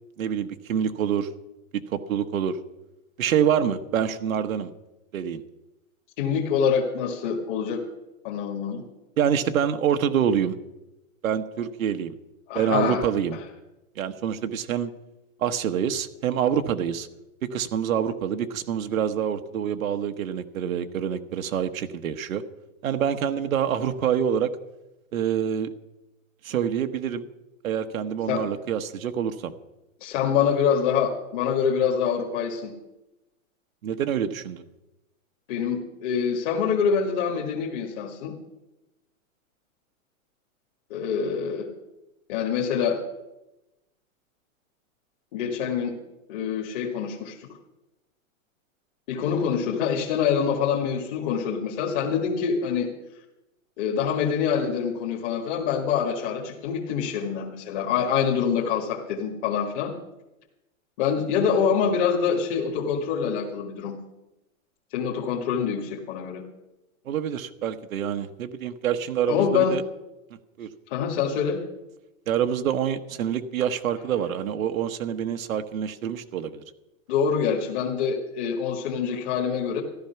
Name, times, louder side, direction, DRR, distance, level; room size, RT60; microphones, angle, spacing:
voice 1, 0.2-1.3 1.7-2.6 3.2-4.7 5.1-5.4 9.2-10.6 11.2-12.2 12.5-13.4 14.0-14.9 15.4-17.1 17.5-22.4 22.8-24.5 25.1-25.7 26.4-27.3 27.6-29.5 33.8-34.6 67.1-69.8 70.6-70.7 72.3-76.6, right 8 dB, 75° right, 7 dB, 1.2 m, -26 dB
voice 2, 6.2-7.8 8.2-8.8 12.5-13.0 28.3-28.4 30.0-32.7 35.5-38.3 40.9-41.7 42.3-43.0 45.3-46.0 46.3-47.5 49.1-52.9 53.8-59.9 61.0-64.0 64.9-66.4 69.3-69.8 70.9-71.6 77.1-79.8, left 7 dB, 35° left, -1 dB, 1.8 m, -25 dB
14.5 x 12.0 x 5.8 m, 0.96 s
hypercardioid pair, 160°, 41 cm